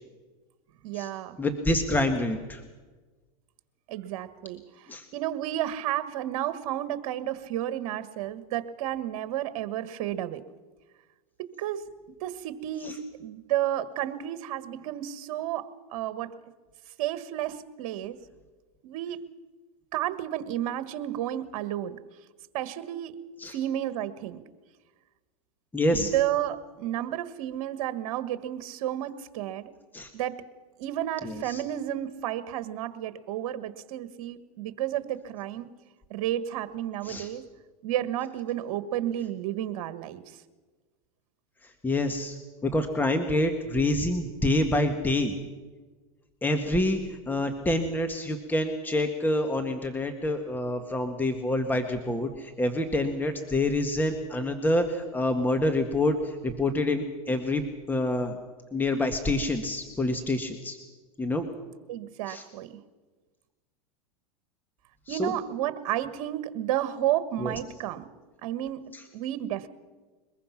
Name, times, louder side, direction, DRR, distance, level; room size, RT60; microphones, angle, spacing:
voice 1, 0.8-1.4 3.9-10.4 11.4-11.8 12.2-16.3 17.0-18.2 18.8-19.2 19.9-22.0 22.5-23.1 23.5-24.4 25.9-29.7 30.1-30.4 30.8-35.7 36.1-37.4 37.8-40.4 61.9-62.8 65.1-68.0 68.4-69.7, right 12 dB, 65° right, 12 dB, 1.6 m, -32 dB
voice 2, 1.4-2.6 4.9-5.0 12.8-12.9 23.4-23.5 25.7-26.1 29.9-30.1 31.2-31.6 37.0-37.3 41.8-42.4 42.6-45.3 46.4-57.6 57.9-58.4 58.7-60.8 61.2-61.5 62.3-62.4 65.1-65.3 67.4-67.5 68.9-69.0, left 1 dB, 10° left, 6 dB, 1.7 m, -27 dB
22.5 x 21.5 x 5.9 m, 1.3 s
hypercardioid pair, 110°, 18 cm